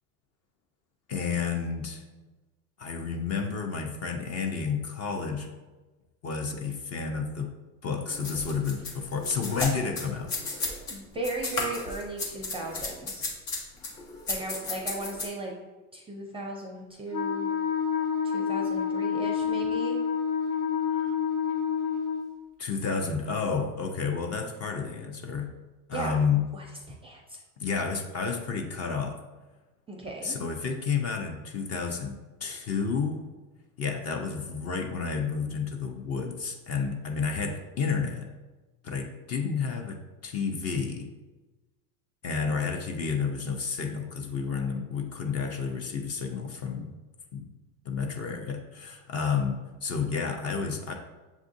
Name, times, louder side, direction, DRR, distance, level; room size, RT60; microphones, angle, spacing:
voice 1, 1.1-2.0 2.8-5.5 6.2-7.5 7.8-10.3 22.6-25.5 25.9-26.4 27.6-29.2 30.2-33.2 33.8-38.3 38.8-41.1 42.2-46.9 47.3-47.4 47.8-50.9, left 5 dB, 35° left, 4 dB, 0.6 m, -30 dB
sound 1, 8.1-10.9 11.2-15.3, left 3 dB, 75° left, 1.3 m, -34 dB
voice 2, 10.9-13.3 14.3-15.5 15.9-17.5 18.2-20.0 25.9-26.1 26.5-27.4 29.9-30.4, right 2 dB, 15° right, 0 dB, 0.5 m, -36 dB
Wind instrument woodwind instrument, 17.1-22.3, left 7 dB, 90° left, 0.9 m, -28 dB
7.1 x 2.4 x 2.6 m, 1.2 s
supercardioid pair, 105°, 44 cm